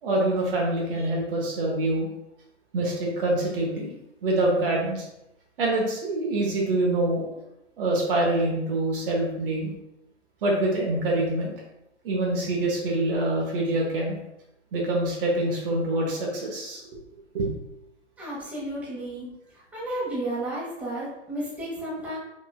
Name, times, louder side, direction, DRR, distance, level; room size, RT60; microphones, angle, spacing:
voice 1, 0.0-2.1 2.7-3.9 4.2-5.0 5.6-7.3 7.8-9.7 10.4-11.5 12.0-14.2 14.7-16.8 17.3-17.6, right 2 dB, 50° right, -1 dB, 1.1 m, -25 dB
voice 2, 18.2-19.3 19.7-22.2, right 1 dB, 5° right, -8 dB, 1.2 m, -32 dB
4.0 x 3.7 x 2.3 m, 0.87 s
hypercardioid pair, 130°, 37 cm